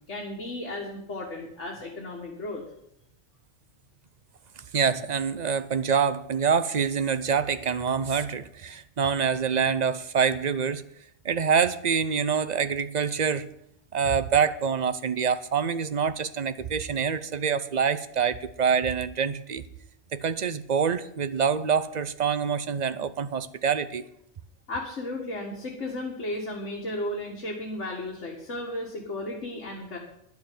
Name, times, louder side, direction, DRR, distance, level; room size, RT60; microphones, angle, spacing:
voice 1, 0.1-2.6 24.7-30.0, left 1 dB, 85° left, -1 dB, 2.1 m, -34 dB
voice 2, 4.7-10.8 11.2-13.5 13.9-19.6 20.1-24.0, right 6 dB, 45° right, 13 dB, 0.7 m, -26 dB
10.5 x 7.1 x 9.3 m, 0.77 s
omnidirectional pair, 1.2 m